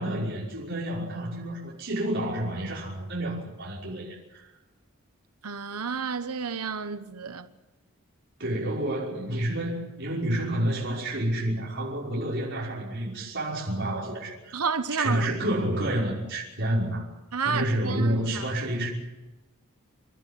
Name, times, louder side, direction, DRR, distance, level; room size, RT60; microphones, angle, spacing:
voice 1, 0.0-4.4 8.4-14.6 15.0-17.1 17.4-18.9, right 1 dB, 55° right, 5.8 m, -29 dB
voice 2, 5.4-7.5 14.5-15.3 17.3-18.5, right 5 dB, 85° right, 1.1 m, -30 dB
28.5 x 12.5 x 9.8 m
head